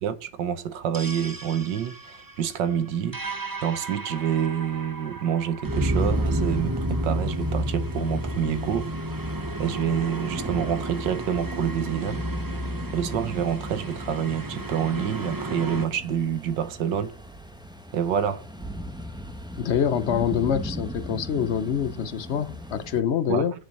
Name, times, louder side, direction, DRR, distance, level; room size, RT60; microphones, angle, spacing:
voice 1, 0.0-3.2 3.6-8.9 9.6-12.2 12.9-17.1 17.9-18.4 23.3-23.5, right 9 dB, 90° right, 1.7 m, -27 dB
sound 1, 0.9-15.9, right 1 dB, 30° right, 0.4 m, -31 dB
sound 2, 6.0-23.0, equal, 5° right, 1.0 m, -38 dB
voice 2, 19.6-23.5, left 8 dB, 50° left, 0.9 m, -25 dB
10.0 x 7.5 x 7.3 m
omnidirectional pair, 1.9 m